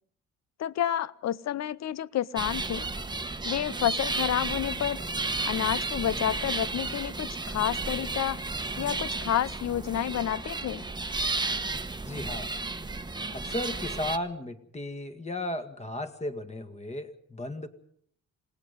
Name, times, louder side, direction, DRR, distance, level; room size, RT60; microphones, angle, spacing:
voice 1, 0.6-2.9 3.4-5.0 5.4-8.4 8.8-10.9, left 11 dB, 60° left, 19 dB, 0.8 m, -29 dB
sound 1, 2.4-14.2, right 3 dB, 15° right, 1.2 m, -33 dB
voice 2, 12.1-12.5 13.3-17.7, left 1 dB, 20° left, 8 dB, 2.1 m, -35 dB
27.0 x 18.5 x 5.4 m, 0.65 s
cardioid pair, 90°, 30 cm